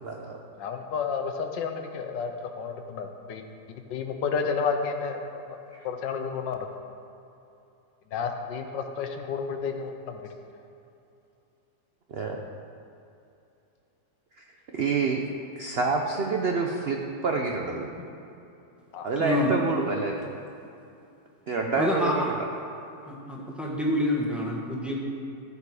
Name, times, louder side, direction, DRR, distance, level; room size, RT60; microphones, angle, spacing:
voice 1, 0.0-0.4 12.1-12.4 14.7-15.2 15.6-17.9 19.0-20.3 21.5-22.3, right 4 dB, 60° right, 1 dB, 0.6 m, -27 dB
voice 2, 0.6-3.4 3.9-5.6 5.8-6.7 8.1-10.2 18.9-19.1, left 5 dB, 85° left, 5 dB, 1.5 m, -31 dB
voice 3, 19.2-19.5 21.7-22.3 23.0-25.0, left 1 dB, ahead, -3 dB, 1.5 m, -27 dB
14.5 x 7.0 x 4.9 m, 2.8 s
omnidirectional pair, 1.9 m